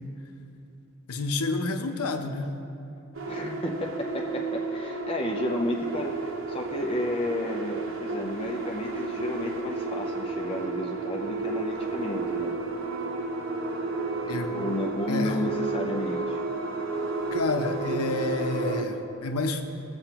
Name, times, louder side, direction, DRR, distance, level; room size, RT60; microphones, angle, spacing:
voice 1, 1.1-2.5 14.3-14.6 15.1-15.4 17.3-19.6, left 2 dB, 85° left, 6 dB, 0.8 m, -29 dB
sound 1, 3.1-18.8, right 3 dB, 60° right, 0.8 m, -32 dB
voice 2, 3.2-12.6 14.5-16.4, left 1 dB, 25° left, 1 dB, 0.5 m, -32 dB
18.0 x 7.8 x 2.9 m, 2.9 s
head